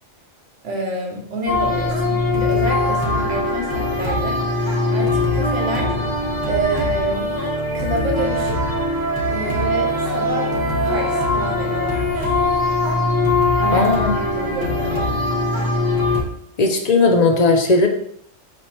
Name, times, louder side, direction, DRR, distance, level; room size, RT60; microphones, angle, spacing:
voice 1, 0.6-6.0 6.5-7.3 7.7-8.8 9.3-10.5 10.8-12.4 13.6-15.1, right 2 dB, 85° right, 1 dB, 1.3 m, -28 dB
sound 1, 1.5-16.2, left 2 dB, 20° right, 1.0 m, -21 dB
voice 2, 13.7-14.1 16.6-17.9, left 3 dB, 55° left, 4 dB, 0.4 m, -16 dB
5.1 x 3.2 x 2.9 m, 0.67 s
omnidirectional pair, 1.2 m